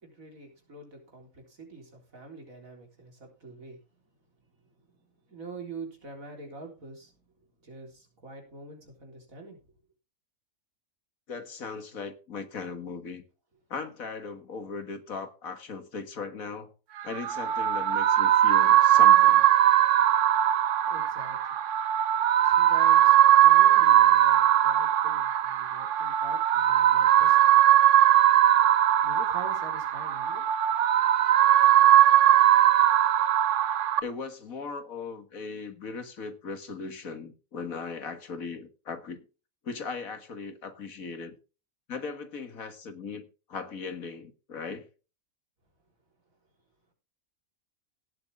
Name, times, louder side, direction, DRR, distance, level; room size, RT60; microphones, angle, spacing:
voice 1, 0.0-4.0 4.5-9.7 20.9-21.6 22.4-23.1 23.4-27.5 29.0-30.5, right 3 dB, 80° right, 4.2 m, -46 dB
voice 2, 11.3-13.2 13.7-16.7 17.0-19.4 34.0-39.2 39.6-41.3 41.9-44.9, left 5 dB, 80° left, 2.1 m, -38 dB
sound 1, 17.0-34.0, right 11 dB, 65° right, 1.0 m, -20 dB
17.0 x 8.1 x 3.5 m
omnidirectional pair, 1.4 m